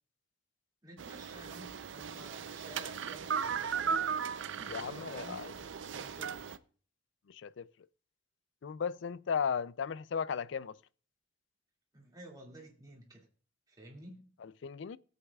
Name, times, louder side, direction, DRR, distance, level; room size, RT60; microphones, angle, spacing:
voice 1, 0.8-4.0 4.6-5.5 5.9-6.5 11.9-13.3 13.7-14.3, right 1 dB, 20° right, 2.3 m, -52 dB
sound 1, 1.0-6.6, right 6 dB, 65° right, 0.5 m, -37 dB
voice 2, 4.7-5.5 7.3-7.7 8.6-10.8 14.4-15.0, left 6 dB, 60° left, 0.4 m, -36 dB
18.5 x 8.0 x 2.4 m
head